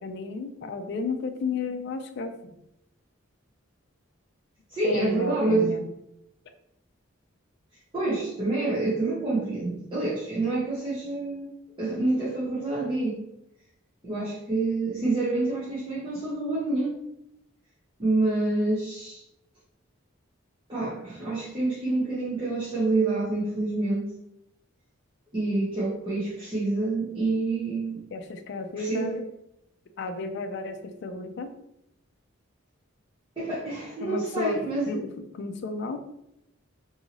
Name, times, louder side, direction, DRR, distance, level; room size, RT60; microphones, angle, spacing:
voice 1, 0.0-2.5 4.8-5.8 28.1-29.3 30.0-31.5 34.0-34.6 34.9-36.0, left 3 dB, 55° left, 7 dB, 0.3 m, -32 dB
voice 2, 4.7-5.7 7.9-11.5 11.8-13.2 14.0-17.0 18.0-19.2 20.7-24.1 25.3-28.0 28.8-29.1 33.4-34.9, right 2 dB, 25° right, -9 dB, 0.7 m, -27 dB
2.7 x 2.7 x 2.8 m, 0.81 s
head